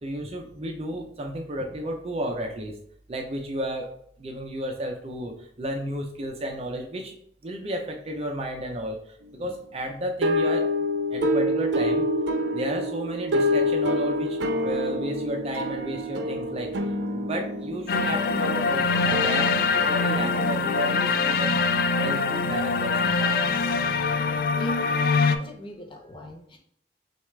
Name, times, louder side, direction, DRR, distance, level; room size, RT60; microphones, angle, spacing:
voice 1, 0.0-2.8 3.1-3.9 4.2-7.1 7.4-10.7 11.1-12.1 12.5-16.7 17.1-21.6 21.9-23.5, equal, 35° right, 2 dB, 0.5 m, -32 dB
sound 1, 10.2-21.7, left 1 dB, 85° right, 0.5 m, -27 dB
sound 2, 17.9-25.4, left 4 dB, 55° left, 0.3 m, -24 dB
voice 2, 25.3-26.6, left 1 dB, 30° left, 2 dB, 0.7 m, -41 dB
6.2 x 2.4 x 3.3 m, 0.67 s
head